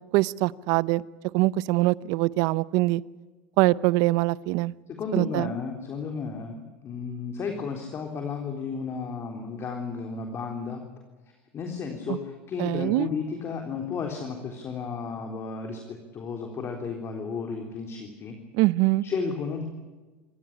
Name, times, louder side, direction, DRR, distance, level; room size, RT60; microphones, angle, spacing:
voice 1, 0.1-1.0 1.3-3.0 3.6-4.7 5.1-5.5 12.1-12.2 12.6-13.1 18.5-19.0, right 19 dB, 65° right, 21 dB, 0.7 m, -23 dB
voice 2, 4.9-10.8 11.5-18.4 19.0-19.6, left 5 dB, 40° left, 3 dB, 3.7 m, -33 dB
27.5 x 15.0 x 10.0 m, 1.3 s
hypercardioid pair, 95°, 7 cm